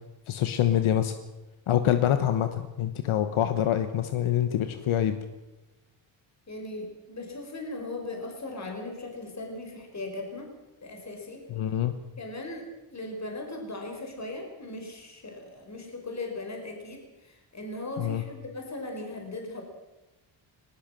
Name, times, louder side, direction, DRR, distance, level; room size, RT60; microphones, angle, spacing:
voice 1, 0.3-1.2 1.7-5.2 11.5-11.9 18.0-18.2, left 11 dB, 85° left, 10 dB, 1.3 m, -25 dB
voice 2, 6.5-10.5 10.8-11.4 12.2-12.6 12.9-19.6, left 2 dB, 35° left, 2 dB, 4.9 m, -38 dB
19.5 x 19.0 x 7.6 m, 1.1 s
cardioid pair, 85°, 47 cm